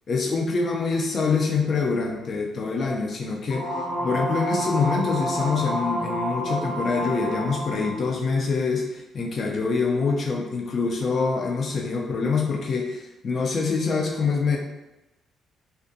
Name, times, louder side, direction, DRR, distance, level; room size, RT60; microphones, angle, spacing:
voice 1, 0.1-3.7 4.0-14.6, left 4 dB, 50° left, 0 dB, 0.4 m, -25 dB
sound 1, 3.5-8.0, equal, 80° left, 0.8 m, -29 dB
2.5 x 2.2 x 2.5 m, 0.96 s
cardioid pair, 90°, 0 cm